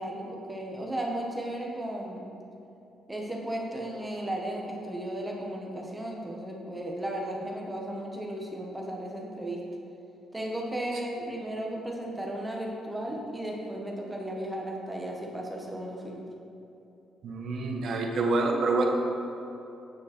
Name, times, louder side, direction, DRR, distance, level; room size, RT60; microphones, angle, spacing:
voice 1, 0.0-2.3 3.1-9.6 10.3-16.2, right 1 dB, 15° right, -1 dB, 1.4 m, -35 dB
voice 2, 17.2-18.9, right 3 dB, 65° right, 1 dB, 1.4 m, -27 dB
9.1 x 7.1 x 4.4 m, 2.9 s
cardioid pair, 90°, 0 cm